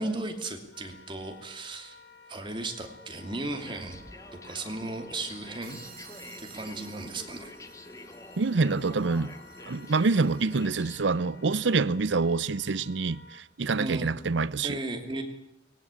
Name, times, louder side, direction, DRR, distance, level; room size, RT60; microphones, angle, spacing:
voice 1, 0.0-2.0 2.3-4.0 4.3-5.8 6.4-7.6 13.8-14.2 14.6-15.2, right 2 dB, 25° right, 2.7 m, -35 dB
Wind instrument woodwind instrument, 0.7-13.4, left 3 dB, 75° left, 2.6 m, -53 dB
sound 1, 3.2-11.8, left 2 dB, 15° left, 1.1 m, -48 dB
sound 2, 5.6-10.8, right 9 dB, 50° right, 3.4 m, -54 dB
voice 2, 8.4-9.3 9.7-14.8, right 4 dB, 75° right, 0.7 m, -26 dB
19.5 x 17.0 x 8.4 m
head